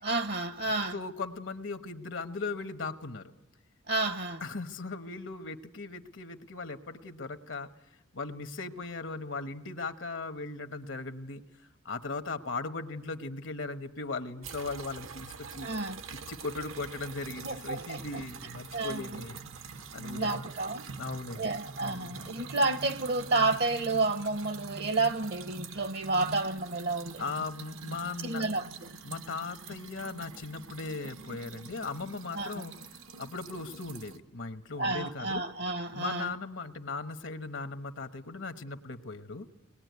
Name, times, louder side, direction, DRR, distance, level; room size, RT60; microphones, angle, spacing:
voice 1, 0.0-1.0 3.9-4.4 15.6-16.0 17.4-18.0 18.7-19.2 19.9-20.9 21.3-27.2 28.2-29.0 32.3-32.6 34.8-36.3, right 3 dB, 55° right, 0.8 m, -31 dB
voice 2, 0.6-3.3 4.4-7.7 8.1-11.4 11.8-15.7 16.3-19.4 19.9-20.5 21.0-21.5 21.8-22.4 27.2-28.4 29.0-35.4 35.9-39.5, left 3 dB, 70° left, 1.2 m, -38 dB
sound 1, 14.4-34.2, right 4 dB, 85° right, 1.2 m, -45 dB
23.0 x 20.0 x 9.4 m
head